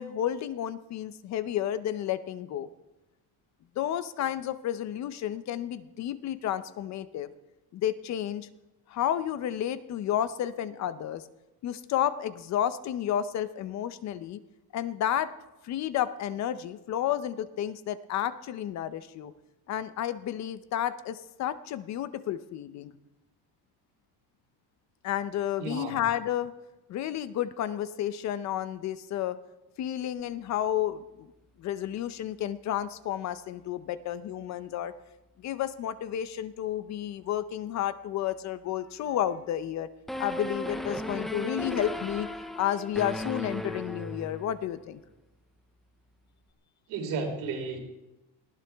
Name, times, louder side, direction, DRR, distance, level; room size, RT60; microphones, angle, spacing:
voice 1, 0.0-2.7 3.8-7.3 7.7-8.5 8.9-11.2 11.6-14.4 14.7-15.3 15.6-19.3 19.7-22.9 25.0-26.5 26.9-29.4 29.8-31.3 31.6-34.9 35.4-39.9 40.2-42.3 42.6-45.0, left 11 dB, 45° left, 13 dB, 0.6 m, -31 dB
voice 2, 25.6-26.0 46.9-47.8, right 4 dB, 70° right, 2 dB, 3.4 m, -33 dB
sound 1, 40.1-44.7, left 1 dB, ahead, 0.4 m, -36 dB
19.5 x 14.0 x 3.4 m, 1.0 s
cardioid pair, 175°, 38 cm